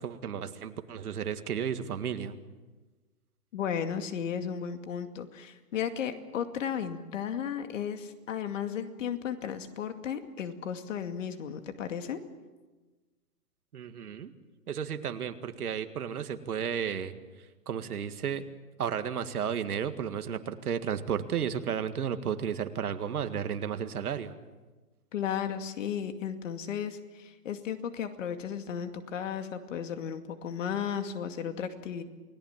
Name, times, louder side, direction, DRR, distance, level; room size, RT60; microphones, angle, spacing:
voice 1, 0.0-2.4 13.7-14.3 14.7-17.1 17.7-18.4 18.8-24.4, right 8 dB, 70° right, 9 dB, 2.0 m, -33 dB
voice 2, 3.5-12.2 25.1-32.0, left 8 dB, 55° left, 7 dB, 2.4 m, -34 dB
29.0 x 18.5 x 7.4 m, 1.3 s
hypercardioid pair, 145°, 46 cm